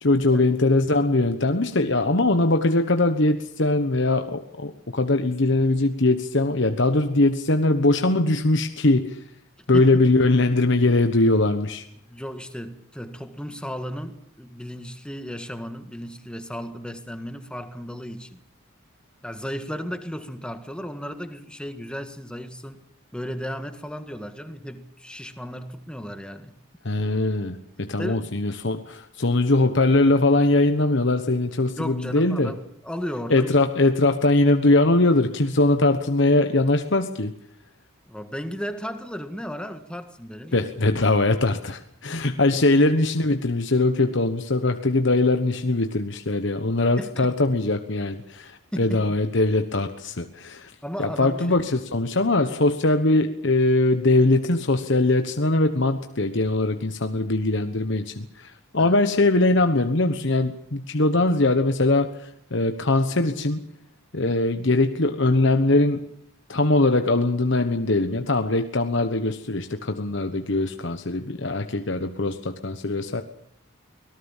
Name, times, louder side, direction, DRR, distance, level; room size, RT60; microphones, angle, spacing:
voice 1, 0.0-9.2 9.7-11.8 26.8-32.5 33.3-37.3 40.5-50.7 51.0-63.7 64.1-66.1 66.5-73.2, left 2 dB, 60° left, 7 dB, 1.2 m, -21 dB
voice 2, 9.7-10.0 12.1-18.4 19.2-22.8 23.1-26.6 28.0-28.3 31.8-33.5 38.1-40.6 47.0-47.3 48.9-49.1 50.8-51.6 58.8-59.0, equal, 5° left, 8 dB, 1.7 m, -35 dB
24.5 x 18.5 x 7.4 m, 0.68 s
head